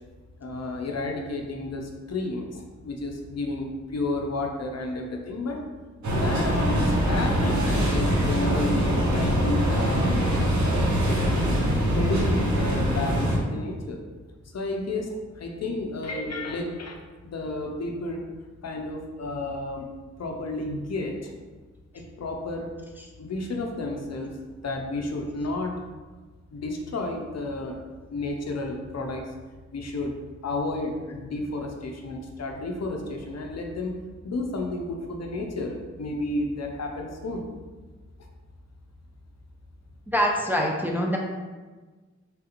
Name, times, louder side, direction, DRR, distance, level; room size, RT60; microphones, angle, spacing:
voice 1, 0.4-5.6 6.1-10.2 11.9-14.0 14.5-18.2 18.6-19.9 20.2-21.3 21.9-22.7 23.2-24.4 24.6-25.7 26.5-27.8 28.1-29.2 29.7-30.1 30.4-33.9 34.2-37.5, left 2 dB, 60° left, 2 dB, 0.5 m, -31 dB
sound 1, 6.0-13.4, equal, 75° right, 0.8 m, -23 dB
voice 2, 40.1-41.2, equal, 5° right, -1 dB, 0.4 m, -24 dB
3.3 x 2.4 x 2.9 m, 1.3 s
wide cardioid pair, 70°, 29 cm